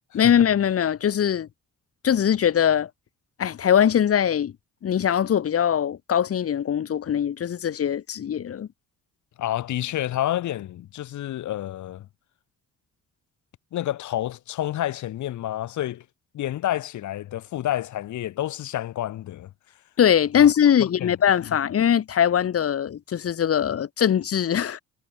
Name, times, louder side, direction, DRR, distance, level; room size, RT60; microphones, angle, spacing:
voice 1, 0.1-1.5 2.0-2.9 3.4-4.5 4.8-8.7 20.0-24.8, left 9 dB, 50° left, 1.3 m, -21 dB
voice 2, 9.4-12.1 13.7-16.0 16.3-19.5 20.3-20.5 20.8-21.1 21.5-21.6, left 13 dB, 70° left, 1.5 m, -29 dB
cardioid pair, 90°, 30 cm